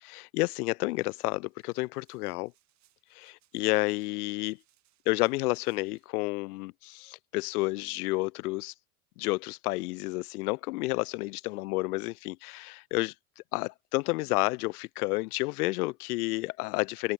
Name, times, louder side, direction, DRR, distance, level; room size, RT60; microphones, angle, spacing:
voice 1, 0.0-2.5 3.1-4.6 5.1-8.7 9.2-13.1 13.5-17.1, left 22 dB, 85° left, 0.7 m, -30 dB
sound 1, 0.9-6.1, right 14 dB, 40° right, 6.3 m, -72 dB
supercardioid pair, 145°, 45 cm